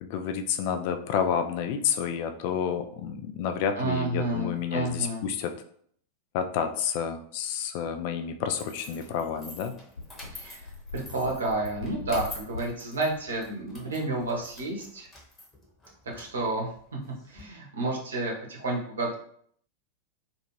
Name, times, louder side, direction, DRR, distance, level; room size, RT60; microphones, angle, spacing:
voice 1, 0.0-5.5 6.3-9.7, left 8 dB, 45° left, 6 dB, 0.3 m, -30 dB
voice 2, 3.7-5.2 10.3-15.1 16.0-16.7 17.3-19.2, right 2 dB, 65° right, -1 dB, 0.8 m, -30 dB
sound 1, 8.6-17.4, left 2 dB, 15° left, 1.0 m, -47 dB
sound 2, 10.0-15.1, left 3 dB, 75° left, 0.9 m, -42 dB
2.6 x 2.4 x 3.0 m, 0.62 s
figure-of-eight pair, 90°, 0 cm